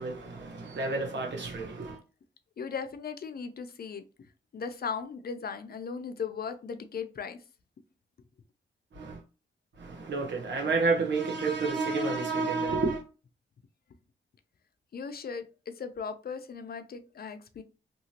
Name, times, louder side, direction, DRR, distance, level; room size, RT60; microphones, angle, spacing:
voice 1, 0.0-2.0 9.0-9.2 9.8-13.0, right 3 dB, 65° right, 1.2 m, -30 dB
voice 2, 2.6-4.0 4.5-7.4 14.9-17.6, left 6 dB, 50° left, 0.5 m, -37 dB
2.8 x 2.7 x 2.8 m
cardioid pair, 75°, 20 cm